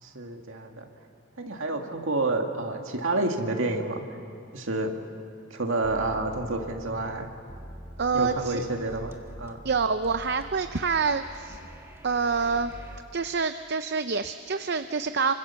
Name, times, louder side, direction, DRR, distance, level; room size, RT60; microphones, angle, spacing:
voice 1, 0.0-0.8 1.4-4.0 4.5-4.9 5.5-7.3 8.1-9.6, right 2 dB, 70° right, 3 dB, 2.1 m, -29 dB
sound 1, 5.8-13.0, equal, 10° right, 1.6 m, -45 dB
voice 2, 8.0-8.6 9.6-11.6 12.0-12.7 13.1-15.3, right 5 dB, 50° right, 9 dB, 0.6 m, -27 dB
26.0 x 25.0 x 7.1 m, 2.5 s
head